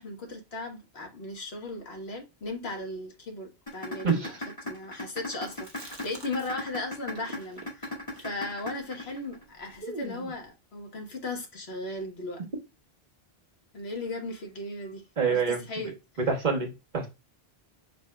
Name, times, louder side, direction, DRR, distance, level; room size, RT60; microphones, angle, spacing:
voice 1, 0.0-12.5 13.7-16.0, left 2 dB, 80° left, 1.5 m, -37 dB
sound 1, 3.7-9.7, left 2 dB, 30° left, 2.0 m, -36 dB
Chewing mastication, 5.3-6.8 7.1-10.5, right 2 dB, 25° right, 1.4 m, -44 dB
voice 2, 15.2-15.6 16.3-17.1, right 5 dB, 45° right, 1.5 m, -26 dB
5.3 x 4.1 x 2.2 m
omnidirectional pair, 1.0 m